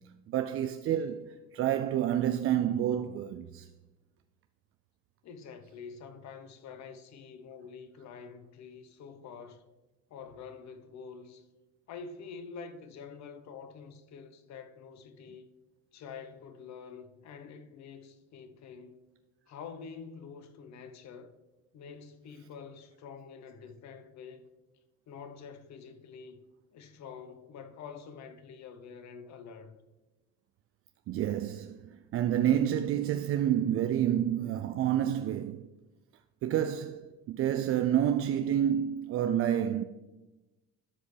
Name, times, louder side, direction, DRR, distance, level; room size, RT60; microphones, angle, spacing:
voice 1, 0.3-3.7 31.1-35.7 36.4-39.8, right 10 dB, 45° right, 0.4 m, -29 dB
voice 2, 5.2-9.7 10.1-11.5 11.9-15.5 15.9-19.0 19.5-21.3 21.7-24.5 25.1-26.4 26.7-29.7, left 6 dB, 55° left, 1.0 m, -47 dB
12.5 x 5.0 x 3.3 m
supercardioid pair, 75°, 33 cm